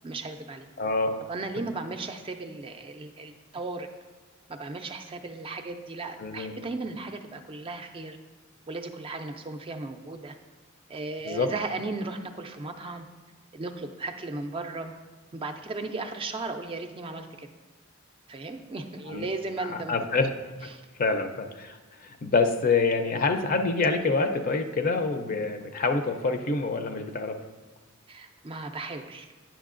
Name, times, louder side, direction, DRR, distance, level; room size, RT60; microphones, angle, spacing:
voice 1, 0.0-0.7 1.3-3.9 4.5-8.2 8.7-10.4 10.9-13.0 13.5-14.9 15.3-17.5 18.3-20.0 20.7-20.8 28.1-29.3, right 3 dB, 25° right, 6 dB, 0.4 m, -36 dB
voice 2, 0.8-1.1 6.2-6.5 11.2-11.5 19.1-19.3 19.7-20.3 20.6-20.7 21.0-27.4, left 3 dB, 45° left, 7 dB, 0.5 m, -26 dB
9.1 x 6.0 x 2.5 m, 1.3 s
head